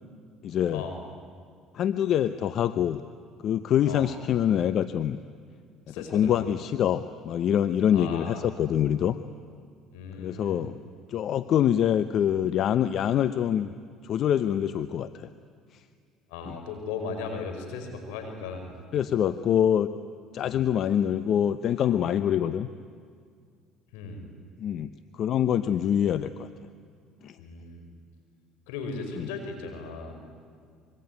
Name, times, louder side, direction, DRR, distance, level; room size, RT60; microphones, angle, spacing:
voice 1, 0.4-0.8 1.7-3.0 3.4-5.2 6.1-9.2 10.2-10.8 11.1-13.7 14.0-15.3 16.4-16.6 18.9-19.9 20.3-22.7 24.6-24.9 25.2-26.5 27.2-27.4 29.1-29.3, left 10 dB, 60° left, 12 dB, 0.8 m, -25 dB
voice 2, 5.9-6.5 7.9-8.4 9.9-10.7 16.3-18.7 20.4-20.6 23.9-24.2 27.4-27.9 28.7-30.1, left 4 dB, 85° left, 5 dB, 5.3 m, -37 dB
25.0 x 23.5 x 9.5 m, 2.2 s
supercardioid pair, 80°, 0 cm